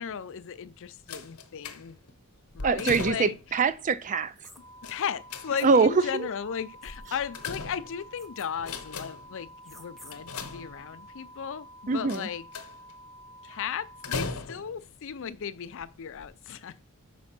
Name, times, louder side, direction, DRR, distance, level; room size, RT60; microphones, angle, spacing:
voice 1, 0.0-2.0 2.5-3.4 4.9-12.5 13.4-16.8, left 7 dB, 60° left, 0.5 m, -36 dB
sound 1, 1.1-2.1 2.6-3.5 4.8-5.9 6.9-8.2 8.5-9.4 10.1-11.1 12.1-12.9 14.0-14.9 15.7-15.8 16.2-16.3, left 4 dB, 80° left, 1.0 m, -38 dB
voice 2, 2.6-4.3 5.6-6.3 11.9-12.3, right 4 dB, 35° right, 0.4 m, -24 dB
sound 2, 4.4-4.6 5.6-5.7 6.8-7.2 8.2-8.5 9.6-10.2, left 1 dB, ahead, 0.7 m, -51 dB
sound 3, 4.6-14.2, equal, 85° right, 3.6 m, -50 dB
5.3 x 5.0 x 5.9 m
head